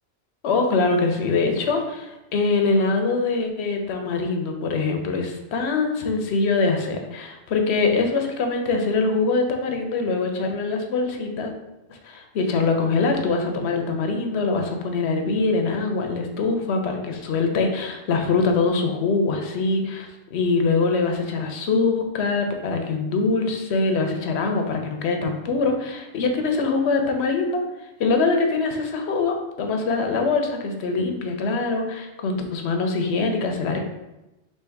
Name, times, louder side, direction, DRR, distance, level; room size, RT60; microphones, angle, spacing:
voice 1, 0.4-11.5 11.9-27.6 28.0-33.8, left 3 dB, 70° left, 4 dB, 0.9 m, -23 dB
3.6 x 2.9 x 4.4 m, 0.99 s
omnidirectional pair, 1.2 m